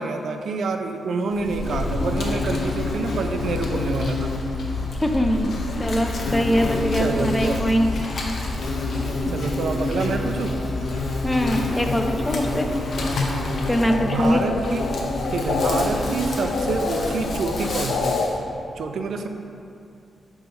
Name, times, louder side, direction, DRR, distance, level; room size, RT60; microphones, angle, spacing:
voice 1, 0.0-4.3 7.0-7.6 9.2-10.6 11.0-11.1 13.9-14.9 15.3-18.2 18.8-19.3, right 4 dB, 70° right, 6 dB, 0.4 m, -27 dB
Insect, 1.3-18.4, left 2 dB, 60° left, 0.7 m, -27 dB
voice 2, 5.0-5.5 5.8-7.9 11.2-12.7 13.7-14.4, equal, 10° left, 4 dB, 0.4 m, -22 dB
sound 1, 13.8-15.8 16.2-18.3, left 4 dB, 85° left, 0.4 m, -28 dB
4.7 x 3.9 x 5.2 m, 2.5 s
wide cardioid pair, 125°, 0 cm